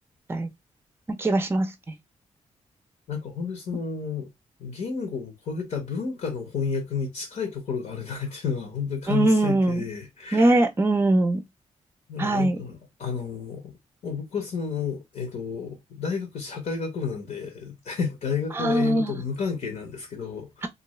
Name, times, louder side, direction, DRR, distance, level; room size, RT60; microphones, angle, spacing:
voice 1, 1.1-1.9 9.1-9.9 10.3-11.4 12.2-12.6 18.5-19.1, right 2 dB, 20° right, 0.5 m, -22 dB
voice 2, 3.1-4.3 4.6-10.6 12.1-13.7 14.0-20.7, left 6 dB, 70° left, 0.9 m, -31 dB
2.6 x 2.3 x 3.0 m
cardioid pair, 75°, 13 cm